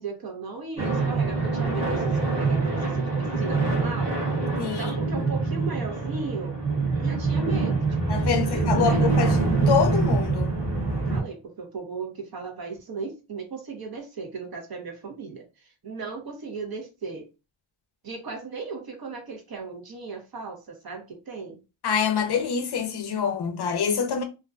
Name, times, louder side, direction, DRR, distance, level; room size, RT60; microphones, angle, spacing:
voice 1, 0.0-4.1 4.8-6.6 6.9-9.0 11.1-17.3 18.0-21.6, right 4 dB, 50° right, 0.8 m, -36 dB
sound 1, 0.8-11.2, right 4 dB, 15° right, 1.0 m, -25 dB
voice 2, 4.6-5.2 8.1-10.6 21.8-24.2, left 7 dB, 55° left, 0.5 m, -26 dB
2.4 x 2.1 x 2.5 m
wide cardioid pair, 140°, 48 cm